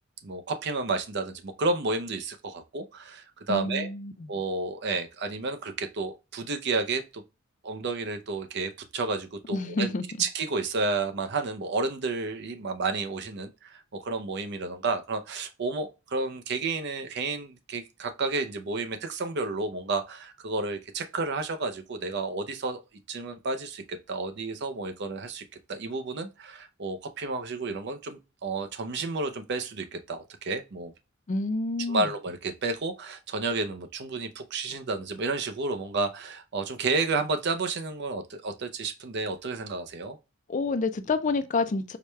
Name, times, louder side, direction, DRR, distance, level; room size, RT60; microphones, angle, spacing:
voice 1, 0.2-3.9 4.3-7.2 7.6-9.9 10.2-22.8 23.1-25.4 25.7-30.9 31.9-40.2, right 3 dB, 55° right, 0.6 m, -31 dB
voice 2, 3.5-4.1 9.5-10.0 31.3-32.1 40.5-42.0, left 3 dB, 40° left, 0.4 m, -28 dB
4.8 x 2.2 x 3.1 m
head